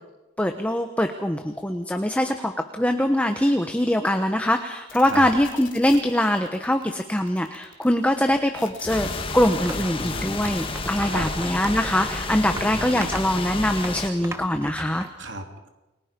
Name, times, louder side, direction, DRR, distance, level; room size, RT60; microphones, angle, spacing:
voice 1, 0.4-9.1 9.3-15.1, left 1 dB, 5° left, 5 dB, 1.2 m, -23 dB
sound 1, 4.9-11.0 11.4-12.0, left 5 dB, 85° left, 2.8 m, -42 dB
sound 2, 8.9-14.1, left 3 dB, 30° left, 2.0 m, -31 dB
sound 3, 9.0-10.0 10.4-15.1, right 2 dB, 15° right, 1.2 m, -38 dB
voice 2, 9.8-10.4 11.1-11.3 12.5-13.0 15.2-15.7, right 2 dB, 70° right, 4 dB, 3.1 m, -35 dB
30.0 x 22.5 x 5.3 m, 1.0 s
head